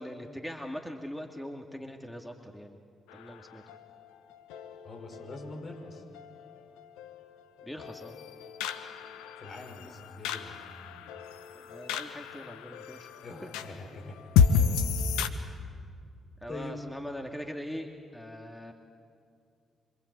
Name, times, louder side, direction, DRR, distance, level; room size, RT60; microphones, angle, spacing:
voice 1, 0.0-2.8 3.1-3.6 7.6-8.2 11.5-13.1 13.4-13.5 16.4-18.7, equal, 5° left, 2 dB, 2.7 m, -41 dB
sound 1, 3.1-15.3, left 6 dB, 85° left, 1.1 m, -32 dB
voice 2, 4.8-6.0 9.4-11.1 13.2-14.2 15.2-15.7 16.5-16.8, left 2 dB, 50° left, 3 dB, 6.1 m, -44 dB
26.0 x 25.5 x 8.5 m, 2.2 s
hypercardioid pair, 45°, 0 cm